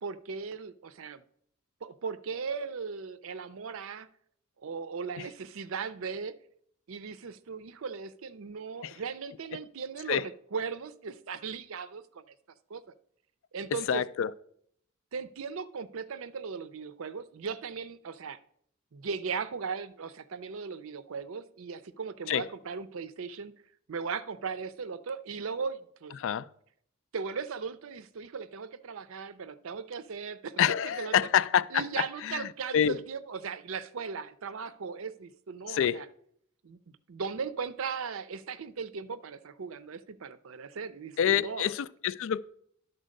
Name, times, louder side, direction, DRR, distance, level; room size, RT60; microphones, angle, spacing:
voice 1, 0.0-1.2 1.8-4.1 4.6-6.4 6.9-12.2 12.7-12.8 13.5-14.0 15.1-18.4 18.9-23.5 23.9-26.2 27.1-31.1 31.7-36.1 36.6-36.8 37.1-41.7, right 5 dB, 70° right, 0.5 m, -37 dB
voice 2, 13.9-14.3 22.3-22.5 26.2-26.5 30.6-33.0 35.7-36.1 41.2-42.4, left 9 dB, 65° left, 0.4 m, -27 dB
11.0 x 4.4 x 6.4 m
head